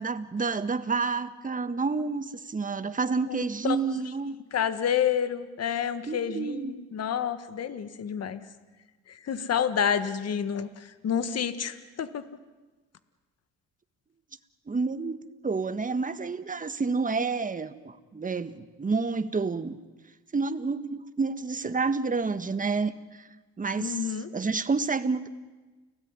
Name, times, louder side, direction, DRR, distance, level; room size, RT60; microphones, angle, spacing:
voice 1, 0.0-4.3 6.1-6.7 14.7-19.8 20.3-23.3 23.6-25.3, right 4 dB, 25° right, 11 dB, 1.5 m, -29 dB
voice 2, 3.3-3.8 4.5-8.4 9.1-12.2 23.8-24.3, left 8 dB, 55° left, 11 dB, 1.6 m, -29 dB
29.5 x 17.5 x 9.7 m, 1.3 s
cardioid pair, 90°, 30 cm